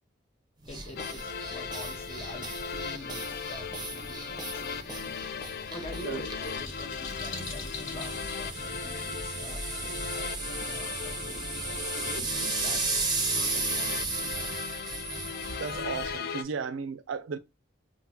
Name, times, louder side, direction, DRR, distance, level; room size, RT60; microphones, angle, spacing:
sound 1, 0.6-16.2, right 3 dB, 20° right, 0.6 m, -35 dB
voice 1, 0.7-4.8 5.7-14.6, left 1 dB, 30° left, 0.7 m, -45 dB
sound 2, 1.0-16.4, left 6 dB, 50° left, 0.3 m, -38 dB
sound 3, 5.1-10.9, left 5 dB, 70° left, 1.1 m, -45 dB
voice 2, 15.6-17.4, right 5 dB, 75° right, 0.4 m, -35 dB
3.5 x 2.0 x 2.8 m
head